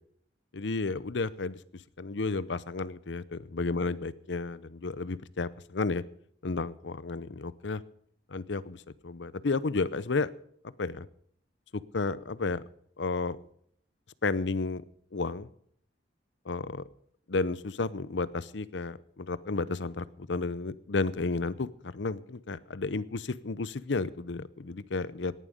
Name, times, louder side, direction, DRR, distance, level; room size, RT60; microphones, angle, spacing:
voice 1, 0.5-1.6 2.0-6.0 6.4-7.8 8.3-10.3 10.8-11.1 11.7-12.6 13.0-13.4 14.2-14.8 15.1-15.5 16.5-16.8 17.3-25.3, left 3 dB, 80° left, 17 dB, 0.7 m, -32 dB
18.0 x 11.0 x 5.1 m, 0.65 s
head